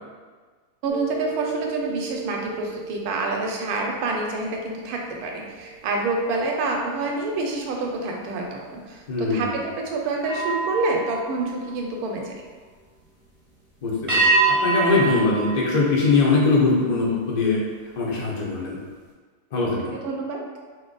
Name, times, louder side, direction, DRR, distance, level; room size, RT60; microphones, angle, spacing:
voice 1, 0.8-12.3 20.0-20.4, right 3 dB, 75° right, 1 dB, 1.0 m, -27 dB
sound 1, 0.9-6.4 6.9-7.2 10.2-12.4 14.1-16.6, right 3 dB, 25° right, 0.8 m, -28 dB
voice 2, 9.1-9.5 13.8-17.6 18.0-18.8 19.5-19.9, left 3 dB, 65° left, -4 dB, 0.4 m, -22 dB
3.1 x 2.2 x 3.8 m, 1.5 s
omnidirectional pair, 1.7 m